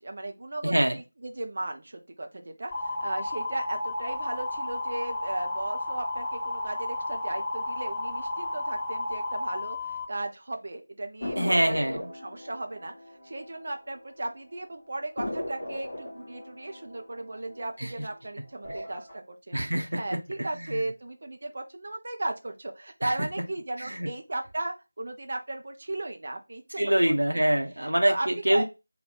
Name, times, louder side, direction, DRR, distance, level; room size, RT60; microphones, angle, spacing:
voice 1, 0.0-12.9 13.2-19.6 19.9-27.1 27.8-28.6, right 2 dB, 40° right, 4 dB, 0.7 m, -36 dB
voice 2, 0.6-1.0 11.4-12.1 17.8-17.9 19.5-20.2 20.5-20.8 23.0-23.1 23.8-24.1 26.8-28.7, right 1 dB, 70° right, 4 dB, 1.0 m, -25 dB
sound 1, 2.7-10.0, left 2 dB, ahead, 0.7 m, -32 dB
sound 2, 11.2-14.3 14.6-14.7 15.2-18.1 18.5-19.1, left 1 dB, 25° left, 1.3 m, -38 dB
3.4 x 2.6 x 4.2 m, 0.26 s
figure-of-eight pair, 170°, 0 cm